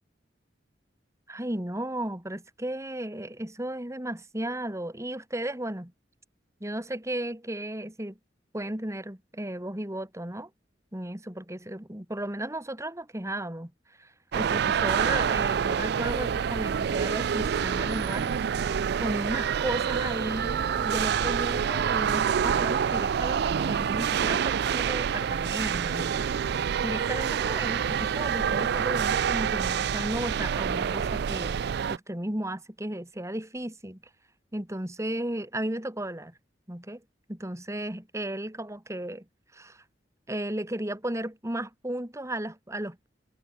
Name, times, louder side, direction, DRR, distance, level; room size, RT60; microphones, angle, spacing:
voice 1, 1.3-5.9 6.6-8.2 8.5-10.5 10.9-13.7 14.0-18.4 19.0-31.6 31.9-34.0 34.5-36.3 36.7-37.0 37.3-39.3 39.5-39.8 40.3-43.1, right 1 dB, 15° right, 2.5 m, -34 dB
sound 1, 14.3-32.0, right 7 dB, 65° right, 0.4 m, -27 dB
head